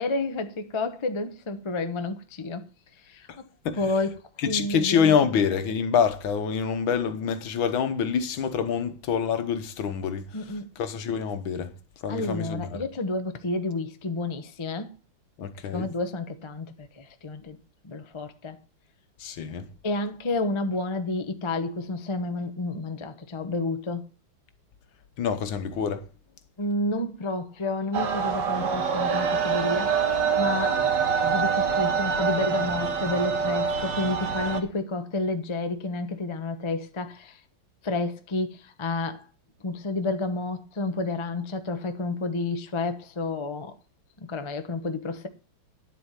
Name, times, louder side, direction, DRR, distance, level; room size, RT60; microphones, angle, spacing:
voice 1, 0.0-2.7 3.1-3.3 3.8-4.2 4.5-5.1 10.3-10.7 12.1-14.9 15.7-17.6 17.8-18.6 19.8-24.0 26.6-29.9 30.4-30.8 31.2-37.4 37.8-39.2 39.6-43.7 44.2-45.3, left 2 dB, 30° left, 0.5 m, -30 dB
voice 2, 4.4-10.4 10.8-11.7 12.0-12.8 15.4-15.9 19.2-19.7 25.2-26.1, left 7 dB, 70° left, 1.8 m, -26 dB
sound 1, 27.9-34.6, right 6 dB, 55° right, 1.9 m, -25 dB
10.5 x 8.0 x 5.8 m
omnidirectional pair, 2.3 m